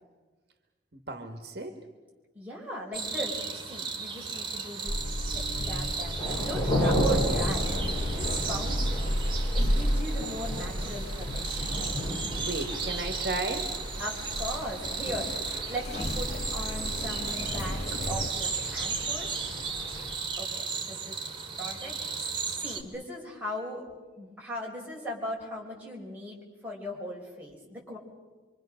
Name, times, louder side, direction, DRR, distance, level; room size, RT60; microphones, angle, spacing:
voice 1, 0.9-1.8 12.4-13.8, right 2 dB, 60° right, 6 dB, 1.7 m, -34 dB
voice 2, 2.3-5.0 5.3-7.7 8.1-9.0 9.3-11.9 14.0-17.8 18.1-19.5 20.4-21.2 21.6-22.0 22.5-23.9 24.2-26.4 26.6-28.0, equal, 10° right, -3 dB, 5.2 m, -39 dB
sound 1, 2.9-22.8, right 5 dB, 25° right, 2.1 m, -35 dB
sound 2, 4.9-18.3, equal, 35° left, 0.7 m, -33 dB
sound 3, 6.2-20.2, equal, 15° left, 4.8 m, -34 dB
26.0 x 25.0 x 6.5 m, 1.3 s
head